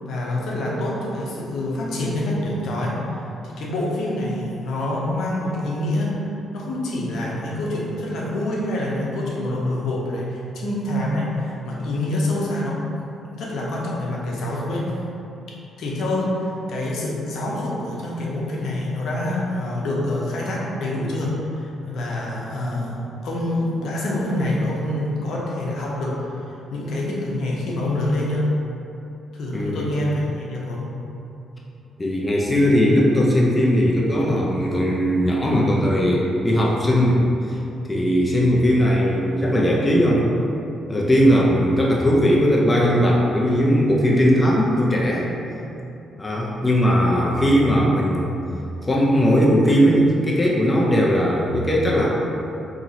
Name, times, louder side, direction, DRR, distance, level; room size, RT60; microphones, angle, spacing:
voice 1, 0.0-3.0 3.4-12.8 13.3-15.0 15.8-28.5 29.3-30.9, left 1 dB, 75° left, -4 dB, 0.7 m, -26 dB
voice 2, 29.5-29.9 32.0-37.2 37.5-37.6 37.9-40.2 40.9-45.3 46.2-48.3 48.9-52.1, equal, 15° left, -4 dB, 0.4 m, -18 dB
2.9 x 2.6 x 3.9 m, 2.8 s
cardioid pair, 120°, 0 cm